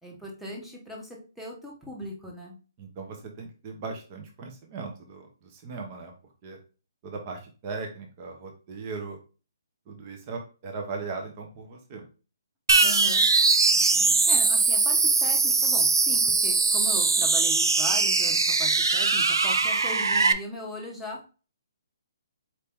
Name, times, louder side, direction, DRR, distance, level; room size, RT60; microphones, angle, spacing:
voice 1, 0.0-2.6 12.8-13.3 14.3-21.3, left 1 dB, ahead, -3 dB, 1.0 m, -38 dB
voice 2, 2.8-6.1 6.4-6.6 7.0-9.2 9.9-12.0 13.7-14.2, right 4 dB, 30° right, 2 dB, 0.8 m, -38 dB
sound 1, 12.7-20.3, right 4 dB, 90° right, 0.4 m, -21 dB
4.6 x 2.8 x 3.5 m, 0.35 s
hypercardioid pair, 155°, 2 cm